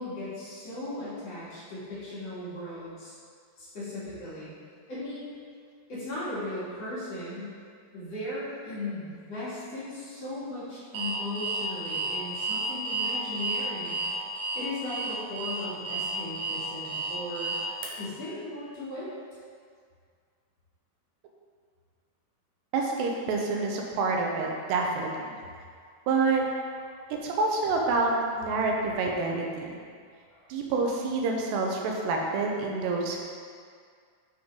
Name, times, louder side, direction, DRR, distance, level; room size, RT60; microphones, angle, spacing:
voice 1, 0.0-3.1 3.6-4.5 4.9-5.3 5.9-7.5 7.9-14.0 14.5-17.6 18.0-19.1 26.8-27.1 30.3-30.5, left 1 dB, 45° left, -10 dB, 3.2 m, -37 dB
Alarm, 10.9-17.9, right 2 dB, 75° right, 1.9 m, -31 dB
voice 2, 22.7-25.4 26.1-26.4 27.1-29.8 30.5-33.2, right 3 dB, 90° right, 0 dB, 3.1 m, -27 dB
11.0 x 5.4 x 3.8 m, 2.1 s
omnidirectional pair, 4.7 m